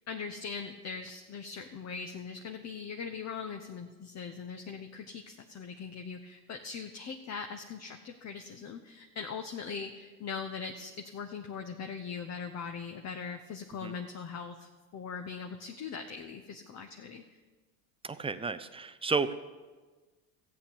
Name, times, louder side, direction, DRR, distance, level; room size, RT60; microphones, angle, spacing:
voice 1, 0.1-17.2, left 5 dB, 35° left, 5 dB, 1.0 m, -41 dB
voice 2, 18.0-19.3, right 4 dB, 10° right, 12 dB, 0.5 m, -32 dB
14.0 x 8.5 x 7.0 m, 1.3 s
hypercardioid pair, 80°, 49 cm